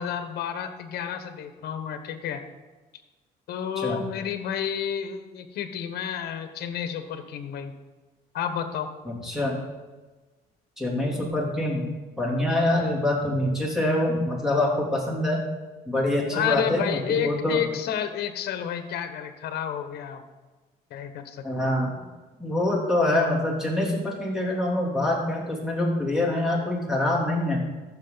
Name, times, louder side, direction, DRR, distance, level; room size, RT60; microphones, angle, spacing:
voice 1, 0.0-2.4 3.5-7.7 8.3-8.9 12.7-12.9 16.3-20.2 20.9-21.8, left 8 dB, 70° left, 8 dB, 1.1 m, -30 dB
voice 2, 9.1-9.6 10.8-11.9 12.2-15.4 15.9-17.6 21.4-21.9 22.4-27.6, left 1 dB, 5° right, -3 dB, 3.0 m, -25 dB
14.0 x 6.3 x 3.9 m, 1.2 s
cardioid pair, 110°, 17 cm